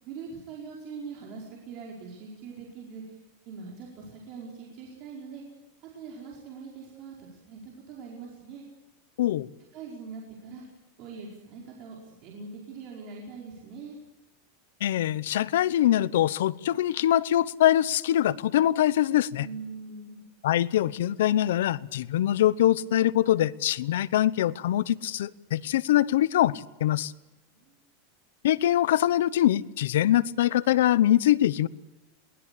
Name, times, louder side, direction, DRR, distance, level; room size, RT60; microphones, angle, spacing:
voice 1, 0.0-3.0 3.4-5.4 5.8-8.6 9.7-10.7 11.0-14.0 19.4-20.2 27.5-27.8, right 5 dB, 40° right, -2 dB, 4.9 m, -42 dB
voice 2, 14.8-19.5 20.4-27.1 28.4-31.7, left 12 dB, 80° left, 19 dB, 0.9 m, -23 dB
22.5 x 20.0 x 8.5 m, 1.1 s
supercardioid pair, 165°, 0 cm